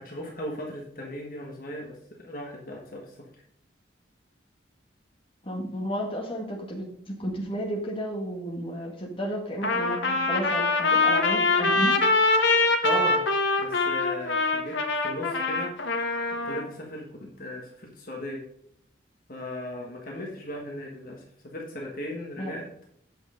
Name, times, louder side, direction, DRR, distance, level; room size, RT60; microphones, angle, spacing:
voice 1, 0.0-3.2 12.8-13.2 13.6-14.7 15.0-15.7 16.4-18.4 19.3-22.6, left 1 dB, 50° left, -1 dB, 1.5 m, -37 dB
voice 2, 5.4-12.0 22.4-22.6, equal, 30° left, -1 dB, 1.8 m, -32 dB
Trumpet, 9.6-16.6, left 3 dB, 80° left, 1.2 m, -24 dB
8.4 x 6.1 x 5.1 m, 0.68 s
head